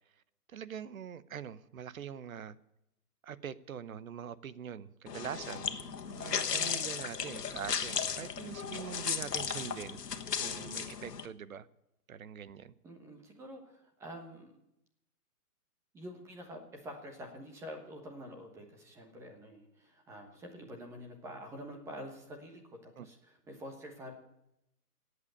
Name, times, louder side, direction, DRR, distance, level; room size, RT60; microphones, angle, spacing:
voice 1, 0.5-2.6 3.2-10.0 10.4-11.7 12.1-12.7 23.0-23.1, right 8 dB, 60° right, 0.9 m, -43 dB
sound 1, 5.1-11.3, left 7 dB, 85° left, 1.6 m, -36 dB
voice 2, 12.8-14.5 15.9-24.1, equal, 5° right, 1.2 m, -47 dB
17.0 x 8.3 x 8.6 m
hypercardioid pair, 160°, 47 cm